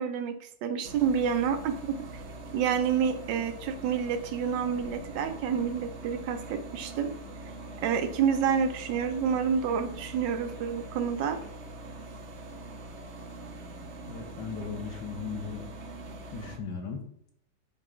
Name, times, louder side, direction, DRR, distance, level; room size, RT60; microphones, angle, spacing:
voice 1, 0.0-2.2 2.5-7.1 7.8-11.4, right 7 dB, 70° right, 9 dB, 1.3 m, -28 dB
sound 1, 0.8-16.6, right 2 dB, 55° right, 0.8 m, -43 dB
voice 2, 14.1-15.7 16.3-17.0, left 5 dB, 65° left, 3 dB, 1.5 m, -37 dB
6.5 x 4.6 x 3.8 m, 0.72 s
omnidirectional pair, 2.2 m